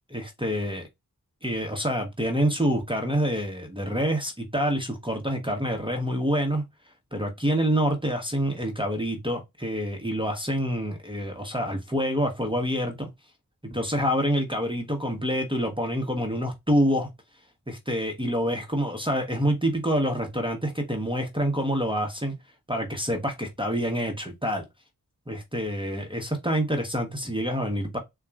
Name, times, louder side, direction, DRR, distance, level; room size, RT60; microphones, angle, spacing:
voice 1, 0.1-0.8 1.4-6.6 7.1-13.1 13.6-17.1 17.7-22.3 22.7-24.6 25.3-28.0, equal, 15° right, 0.8 m, -27 dB
3.9 x 2.2 x 3.4 m
wide cardioid pair, 65°, 37 cm